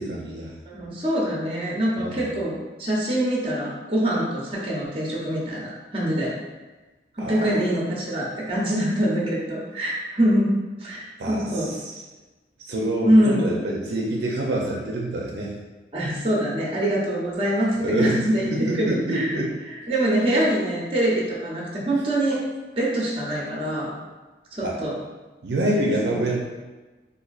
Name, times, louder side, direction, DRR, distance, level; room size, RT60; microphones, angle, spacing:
voice 1, 0.0-0.5 2.0-2.3 7.2-7.5 11.2-12.0 12.6-15.5 17.8-18.2 18.5-19.5 24.6-24.8 25.4-26.4, right 1 dB, 70° right, -3 dB, 0.5 m, -26 dB
voice 2, 0.7-2.5 2.8-6.3 7.2-10.5 10.8-11.7 13.0-13.4 15.9-19.3 19.7-22.4 22.8-23.9 24.5-24.9 26.1-26.2, right 1 dB, 30° right, -4 dB, 0.8 m, -24 dB
4.2 x 2.6 x 2.4 m, 1.2 s
head